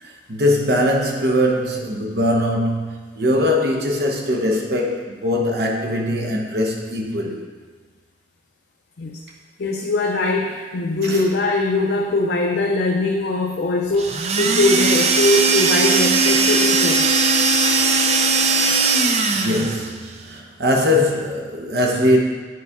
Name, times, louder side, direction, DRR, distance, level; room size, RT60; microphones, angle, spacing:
voice 1, 0.0-7.5 11.0-11.2 19.3-22.2, left 1 dB, 60° right, 0 dB, 0.9 m, -21 dB
voice 2, 9.6-17.2, left 2 dB, 60° left, 0 dB, 0.5 m, -21 dB
sound 1, 14.0-19.9, right 3 dB, 35° right, 0.4 m, -18 dB
9.5 x 4.0 x 3.6 m, 1.4 s
head